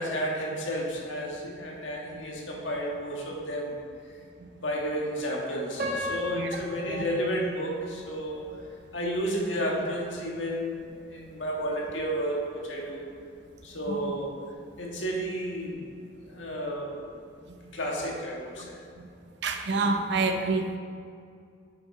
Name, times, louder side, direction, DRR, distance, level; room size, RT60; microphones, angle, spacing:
voice 1, 0.0-3.8 4.5-8.4 8.9-13.0 13.6-14.4 14.8-15.8 16.3-17.1 17.7-18.8, equal, 85° left, -2 dB, 1.8 m, -32 dB
Piano, 5.8-8.8 9.4-9.5 10.1-10.4, equal, 45° right, 1.7 m, -36 dB
voice 2, 6.3-7.0 13.9-14.1 18.6-18.7 19.0-19.1 19.4-20.8, right 3 dB, 65° right, 6 dB, 0.7 m, -29 dB
7.8 x 6.8 x 4.9 m, 2.3 s
head